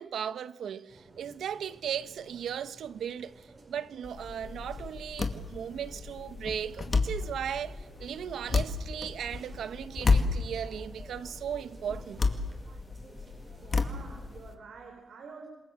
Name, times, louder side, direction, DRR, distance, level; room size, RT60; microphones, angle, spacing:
voice 1, 0.0-12.2 12.7-12.8 13.5-13.6, right 8 dB, 85° right, 1.0 m, -37 dB
sound 1, 0.9-14.4, right 2 dB, 40° right, 4.9 m, -54 dB
sound 2, 4.0-14.5, left 4 dB, 40° left, 2.1 m, -32 dB
voice 2, 13.6-15.5, right 4 dB, 70° right, 4.2 m, -48 dB
27.5 x 22.0 x 7.6 m
wide cardioid pair, 125°, 0 cm